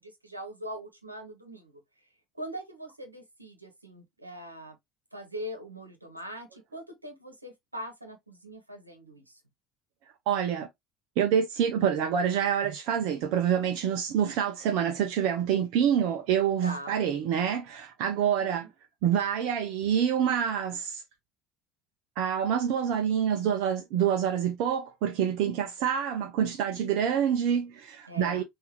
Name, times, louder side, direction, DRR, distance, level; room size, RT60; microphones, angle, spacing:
voice 1, 0.0-1.8 2.3-4.8 5.1-9.4 16.6-17.0 18.2-18.7 28.1-28.4, equal, 85° right, 1.1 m, -42 dB
voice 2, 10.3-10.7 11.2-18.7 19.0-21.0 22.2-28.4, right 8 dB, 55° right, 0.7 m, -27 dB
5.6 x 2.7 x 3.0 m
figure-of-eight pair, 60°, 0 cm